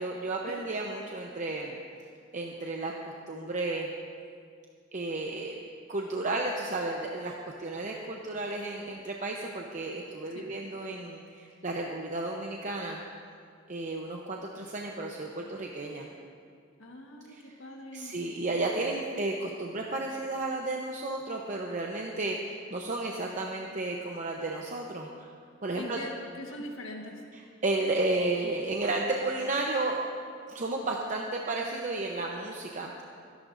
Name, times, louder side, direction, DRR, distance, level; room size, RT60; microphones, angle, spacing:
voice 1, 0.0-1.8 2.3-3.9 4.9-5.6 5.9-7.3 7.6-13.0 13.7-16.1 17.3-17.4 17.9-25.3 25.6-26.0 27.3-30.0 30.5-33.0, right 2 dB, 40° right, 0 dB, 0.8 m, -33 dB
voice 2, 16.8-17.3 17.6-18.1 25.7-26.1 26.4-27.2, left 1 dB, 80° left, 0 dB, 1.4 m, -42 dB
24.5 x 11.0 x 2.6 m, 2.2 s
head